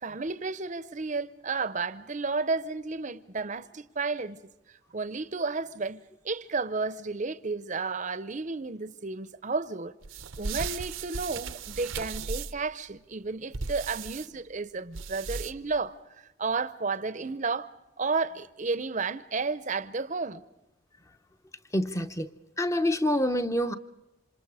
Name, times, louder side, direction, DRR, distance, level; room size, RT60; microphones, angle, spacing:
voice 1, 0.0-4.4 4.9-6.0 6.2-9.9 10.4-16.0 16.4-17.7 18.0-20.4, right 4 dB, 35° right, 0.7 m, -32 dB
sound 1, 10.0-12.7 13.5-14.3 14.9-15.8, right 5 dB, 75° right, 0.8 m, -36 dB
voice 2, 21.7-22.3 22.6-23.7, left 1 dB, 15° left, 0.7 m, -26 dB
28.0 x 26.5 x 4.9 m
head